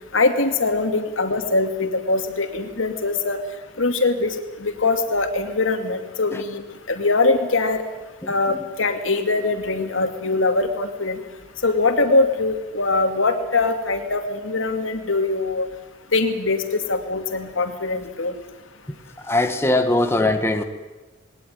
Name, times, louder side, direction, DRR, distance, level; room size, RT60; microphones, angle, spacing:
voice 1, 0.1-3.4 3.8-4.3 4.6-6.6 6.9-7.8 8.3-11.2 11.6-15.7 16.1-16.6 16.9-18.3, left 3 dB, 90° left, 6 dB, 2.4 m, -22 dB
voice 2, 19.2-20.6, left 2 dB, 10° left, 6 dB, 1.2 m, -20 dB
20.5 x 18.0 x 9.3 m, 1.2 s
head